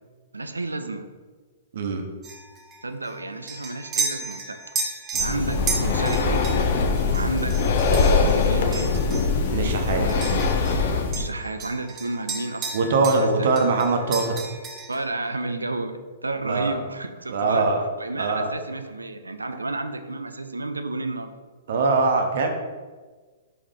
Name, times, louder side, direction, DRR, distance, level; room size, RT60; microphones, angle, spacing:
voice 1, 0.3-1.1 2.8-4.6 5.2-7.6 8.2-9.0 9.9-10.4 10.9-13.8 14.9-17.7 18.0-21.3, right 2 dB, 90° right, 9 dB, 0.4 m, -32 dB
sound 1, 2.2-10.9 11.1-13.3 13.6-15.1, right 4 dB, 25° right, 0.7 m, -33 dB
Breathing, 5.1-11.3, left 4 dB, 55° left, 0.5 m, -22 dB
voice 2, 9.5-10.0 12.7-14.4 16.4-16.8 17.3-17.8 18.2-18.5 21.7-22.5, right 3 dB, 60° right, 4 dB, 0.7 m, -22 dB
4.8 x 3.0 x 3.7 m, 1.4 s
figure-of-eight pair, 115°, 0 cm